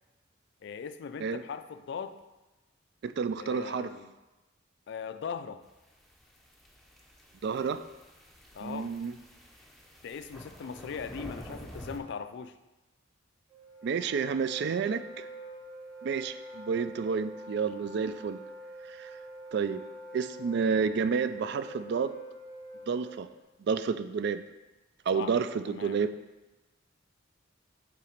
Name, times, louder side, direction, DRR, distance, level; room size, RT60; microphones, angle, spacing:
voice 1, 0.6-2.2 3.4-4.1 4.9-5.6 8.5-8.9 10.0-12.5 25.1-25.3 25.7-26.0, left 6 dB, 55° left, 11 dB, 0.3 m, -39 dB
voice 2, 3.0-3.9 7.4-7.8 8.6-9.1 13.8-15.3 16.0-18.4 18.9-19.1 19.5-19.8 20.1-22.1 22.9-23.3 23.7-24.4 25.1-26.1, right 5 dB, 55° right, 11 dB, 0.3 m, -30 dB
sound 1, 5.9-12.0, equal, ahead, 0.6 m, -48 dB
Wind instrument woodwind instrument, 13.5-23.4, right 1 dB, 30° right, 2.0 m, -46 dB
5.6 x 4.0 x 5.1 m, 1.1 s
head